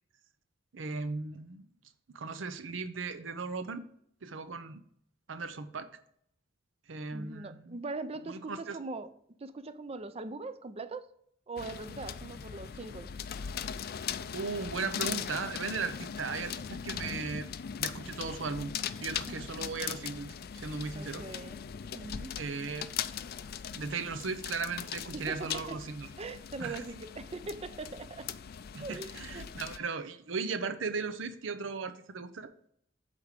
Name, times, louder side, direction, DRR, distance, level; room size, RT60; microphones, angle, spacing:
voice 1, 0.7-1.7 2.1-3.9 4.2-4.8 5.3-5.9 6.9-7.8 8.3-8.8 14.3-17.5 17.8-18.7 19.0-21.2 22.4-22.9 23.7-26.1 26.6-26.8 28.7-32.5, right 4 dB, 85° right, 0.7 m, -37 dB
voice 2, 7.1-11.1 11.5-13.1 19.3-19.7 20.9-21.6 21.9-22.4 25.1-25.8 26.2-28.3 28.8-29.5, right 3 dB, 35° right, 0.5 m, -41 dB
sound 1, 11.6-29.8, left 8 dB, 55° left, 0.4 m, -40 dB
8.4 x 3.5 x 6.5 m
head